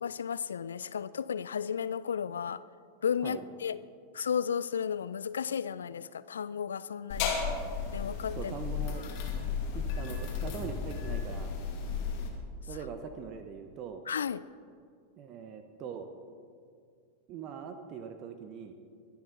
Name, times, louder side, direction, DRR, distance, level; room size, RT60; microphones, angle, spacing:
voice 1, 0.0-2.6 3.0-3.8 4.1-7.4 7.9-8.5 14.1-14.4, left 7 dB, 70° left, 17 dB, 0.3 m, -33 dB
sound 1, 7.1-12.3, left 6 dB, 45° left, 2.4 m, -34 dB
voice 2, 8.3-9.0 9.7-11.5 12.7-14.0 15.2-16.1 17.3-18.8, right 7 dB, 35° right, 7 dB, 1.0 m, -42 dB
23.0 x 11.5 x 4.0 m, 2.2 s
figure-of-eight pair, 90°, 0 cm